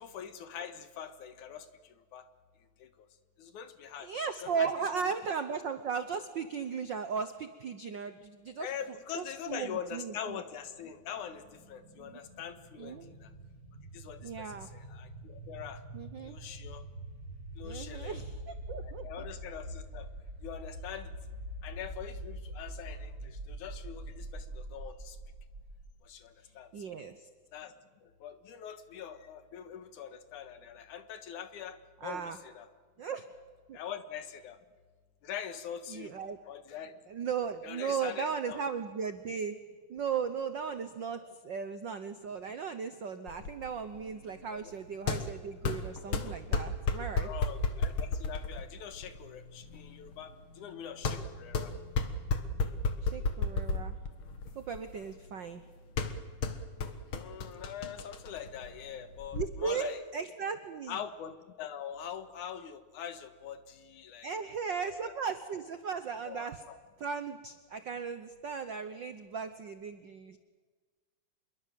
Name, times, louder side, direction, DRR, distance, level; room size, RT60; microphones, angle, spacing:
voice 1, 0.0-2.3 2.8-2.9 3.4-4.1 4.4-4.7 5.1-5.2 8.6-13.3 13.9-15.8 16.2-16.8 17.6-18.1 18.8-20.1 20.4-21.1 21.6-25.2 26.0-27.0 27.5-27.7 28.0-32.7 33.7-34.6 35.2-36.1 36.5-36.9 37.6-38.6 44.5-44.7 46.1-46.4 47.2-51.7 57.1-60.0 60.9-64.3 64.7-65.1 66.2-66.8, left 8 dB, 75° left, 10 dB, 2.9 m, -43 dB
voice 2, 4.0-8.7 9.1-10.4 12.0-12.2 12.8-13.1 14.2-14.7 15.9-16.4 17.6-19.1 26.7-27.3 32.0-32.4 33.0-33.2 33.7-33.8 35.9-36.4 37.1-39.6 39.9-47.3 53.0-54.0 54.5-55.6 59.3-61.0 64.2-66.6 67.0-70.4, right 6 dB, 70° right, 9 dB, 1.0 m, -36 dB
sound 1, 10.1-25.9, right 1 dB, 35° right, 5.4 m, -45 dB
sound 2, 43.3-59.5, left 3 dB, 50° left, 2.0 m, -35 dB
26.5 x 22.5 x 7.7 m, 1.5 s
omnidirectional pair, 3.6 m